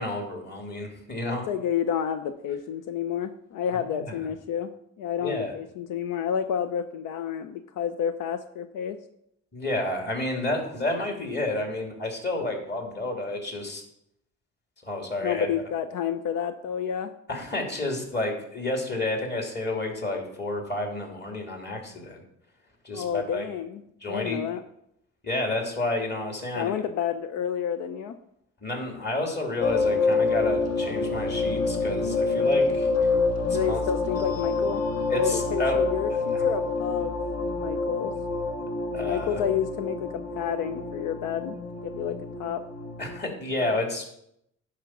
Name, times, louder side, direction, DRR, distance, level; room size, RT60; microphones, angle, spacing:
voice 1, 0.0-1.5 3.9-4.3 5.2-5.5 9.5-13.8 14.9-15.5 17.3-22.2 22.8-23.5 24.0-24.5 25.2-26.8 28.6-32.9 33.5-33.8 35.1-35.8 36.1-36.5 38.9-39.4 43.0-44.0, left 2 dB, 35° left, 1 dB, 2.9 m, -30 dB
voice 2, 1.5-9.0 15.2-17.1 22.9-24.6 26.6-28.2 33.5-37.2 37.5-38.1 38.9-41.6 41.8-42.7 43.6-43.8, left 8 dB, 90° left, 10 dB, 0.6 m, -30 dB
sound 1, 29.6-43.2, left 3 dB, 55° left, 1.5 m, -27 dB
11.0 x 5.1 x 6.0 m, 0.76 s
cardioid pair, 90°, 30 cm